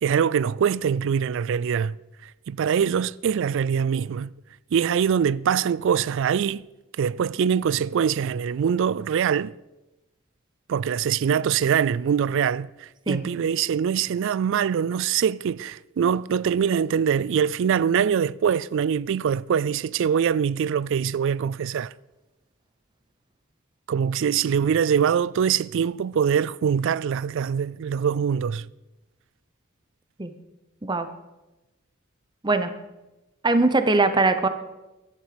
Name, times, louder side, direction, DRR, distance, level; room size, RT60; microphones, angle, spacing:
voice 1, 0.0-2.0 2.5-4.3 4.7-6.7 7.0-9.5 10.7-21.9 23.9-28.7, right 7 dB, 60° right, 0.3 m, -23 dB
voice 2, 33.4-34.5, right 3 dB, 20° right, 0.8 m, -21 dB
12.5 x 11.5 x 5.1 m
head